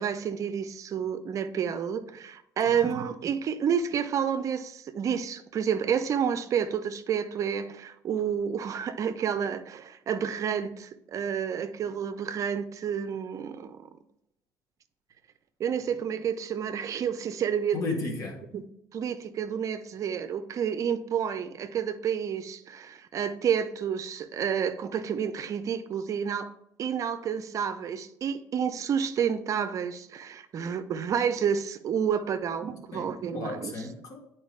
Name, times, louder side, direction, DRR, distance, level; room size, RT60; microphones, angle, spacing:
voice 1, 0.0-13.9 15.6-17.8 18.5-18.6 18.9-26.5 26.8-33.7, right 8 dB, 50° right, 0.6 m, -30 dB
voice 2, 17.7-18.4 32.9-34.2, left 3 dB, 55° left, 1.9 m, -34 dB
8.8 x 4.4 x 3.2 m
supercardioid pair, 85°, 7 cm